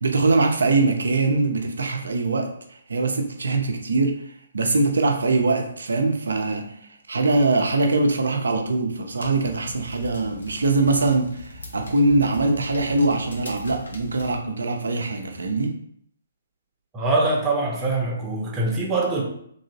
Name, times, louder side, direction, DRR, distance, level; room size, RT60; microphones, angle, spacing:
voice 1, 0.0-6.7 7.1-15.7, right 3 dB, 65° right, 4 dB, 0.6 m, -22 dB
sound 1, 9.2-14.4, left 1 dB, 75° left, 0.8 m, -40 dB
voice 2, 16.9-19.2, right 2 dB, 15° right, -2 dB, 0.8 m, -23 dB
3.0 x 2.9 x 2.7 m, 0.68 s
figure-of-eight pair, 130°, 0 cm